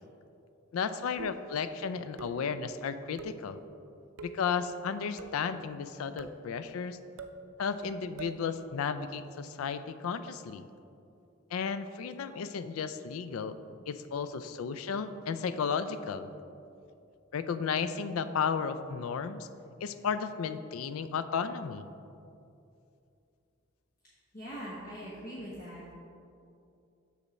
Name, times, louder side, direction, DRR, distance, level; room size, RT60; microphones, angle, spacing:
voice 1, 0.7-3.6 4.2-7.0 7.6-10.7 11.5-13.6 13.9-16.3 17.3-19.5 19.8-21.9, left 6 dB, 90° left, 12 dB, 0.4 m, -34 dB
sound 1, 1.2-1.6 2.2-2.6 3.2-3.5 4.2-4.5 5.2-5.5 6.2-6.5 7.2-7.4 8.2-8.4, right 4 dB, 80° right, 0.5 m, -45 dB
voice 2, 24.3-25.8, equal, 45° left, -6 dB, 1.1 m, -42 dB
6.8 x 6.3 x 4.1 m, 2.6 s
head